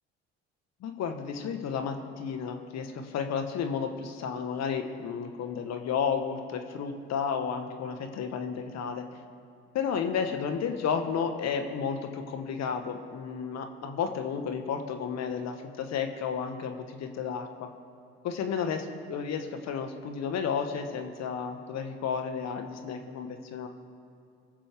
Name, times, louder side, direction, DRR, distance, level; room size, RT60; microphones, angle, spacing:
voice 1, 0.8-9.1 9.7-17.7 18.2-23.7, left 6 dB, 55° left, 6 dB, 1.3 m, -32 dB
22.5 x 7.5 x 3.6 m, 2.6 s
hypercardioid pair, 65°, 32 cm